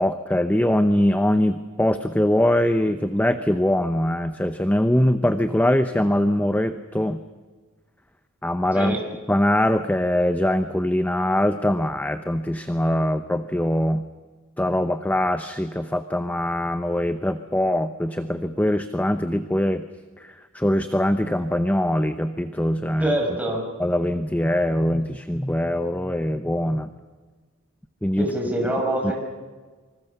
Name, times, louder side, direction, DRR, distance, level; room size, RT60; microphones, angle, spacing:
voice 1, 0.0-7.2 8.4-9.0 9.3-14.0 14.6-19.8 20.2-23.1 23.8-26.9 28.0-28.3 29.0-29.1, left 1 dB, 10° left, 9 dB, 0.8 m, -22 dB
voice 2, 23.0-23.6 28.2-29.1, right 1 dB, 10° right, 0 dB, 6.4 m, -25 dB
25.5 x 25.5 x 6.8 m, 1.4 s
head